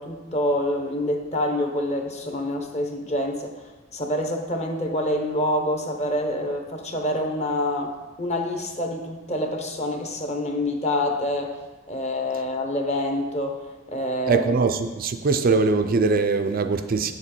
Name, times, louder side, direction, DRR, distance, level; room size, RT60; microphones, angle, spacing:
voice 1, 0.0-3.6 3.9-11.5 11.9-13.6 13.9-14.5, left 1 dB, 30° left, 4 dB, 0.9 m, -26 dB
voice 2, 14.3-17.1, right 4 dB, 40° right, 7 dB, 0.4 m, -22 dB
8.4 x 7.1 x 4.3 m, 1.2 s
head